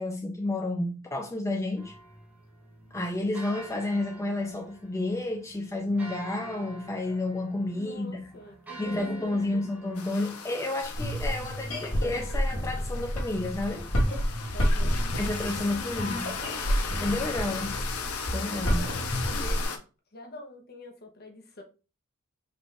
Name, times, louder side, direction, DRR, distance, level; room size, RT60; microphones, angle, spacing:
voice 1, 0.0-1.9 2.9-8.2 8.8-13.9 15.2-16.3 17.0-17.8 18.3-18.9, left 2 dB, 15° left, 0.4 m, -31 dB
sound 1, 1.8-10.4, right 2 dB, 5° right, 0.9 m, -47 dB
voice 2, 7.7-9.6 14.5-15.0 15.5-16.5 17.6-17.8 18.4-19.7 20.1-21.6, equal, 45° left, 0.9 m, -46 dB
sound 2, 10.0-19.8, left 5 dB, 90° left, 0.7 m, -37 dB
sound 3, 10.8-19.6, equal, 70° left, 1.6 m, -29 dB
4.0 x 2.5 x 3.3 m
head